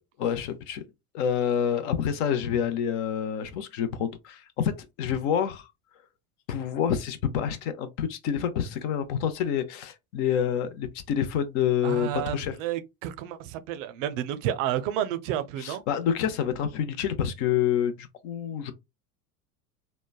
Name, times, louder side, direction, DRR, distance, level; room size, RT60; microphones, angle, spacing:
voice 1, 0.2-0.8 1.1-4.7 5.0-5.7 6.5-12.6 15.6-18.7, left 9 dB, 55° left, 0.6 m, -27 dB
voice 2, 11.8-15.8, right 11 dB, 60° right, 0.5 m, -30 dB
3.1 x 2.1 x 2.2 m
hypercardioid pair, 80°, 45 cm